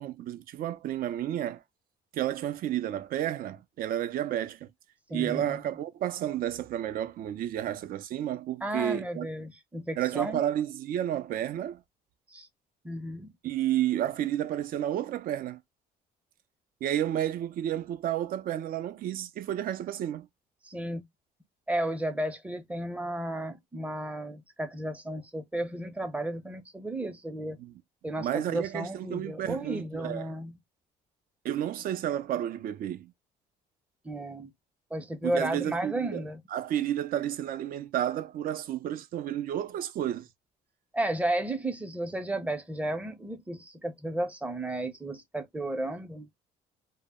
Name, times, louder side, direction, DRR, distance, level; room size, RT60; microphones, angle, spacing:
voice 1, 0.0-1.6 2.1-4.7 5.1-9.3 10.0-11.8 13.4-15.6 16.8-20.3 27.6-27.7 28.2-30.3 31.4-33.1 35.2-40.3, right 11 dB, 60° right, 0.5 m, -31 dB
voice 2, 5.1-5.6 8.6-10.4 12.3-12.5 12.8-13.3 20.6-21.0 21.7-27.6 28.0-30.6 34.0-34.5 34.9-36.4 40.9-46.3, right 1 dB, 10° right, 0.6 m, -33 dB
2.1 x 2.1 x 3.4 m
cardioid pair, 110°, 17 cm